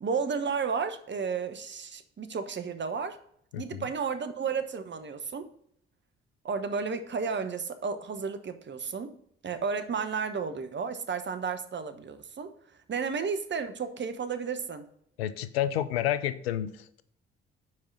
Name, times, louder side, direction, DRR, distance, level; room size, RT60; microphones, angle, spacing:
voice 1, 0.0-3.2 3.6-5.5 6.4-9.1 9.4-12.5 12.9-14.9, right 5 dB, 40° right, 9 dB, 1.1 m, -32 dB
voice 2, 3.5-3.8 15.2-17.0, left 11 dB, 90° left, 13 dB, 0.5 m, -30 dB
5.9 x 4.8 x 6.1 m, 0.68 s
hypercardioid pair, 45°, 30 cm